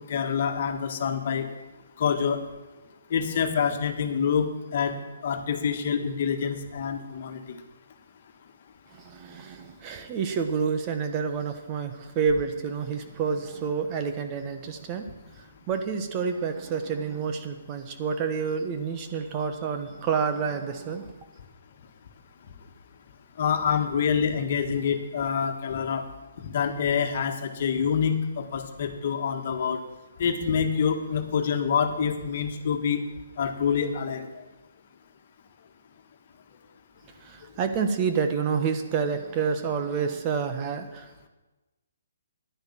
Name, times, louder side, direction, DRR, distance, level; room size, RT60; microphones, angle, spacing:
voice 1, 0.1-1.5 2.0-2.4 3.1-5.0 5.2-7.6 23.4-26.0 26.4-29.8 30.2-33.0 33.4-34.3, left 7 dB, 50° left, 5 dB, 1.5 m, -26 dB
voice 2, 8.9-21.2 37.2-41.3, right 6 dB, 30° right, 7 dB, 1.2 m, -29 dB
10.5 x 10.5 x 7.4 m, 1.1 s
figure-of-eight pair, 135°, 0 cm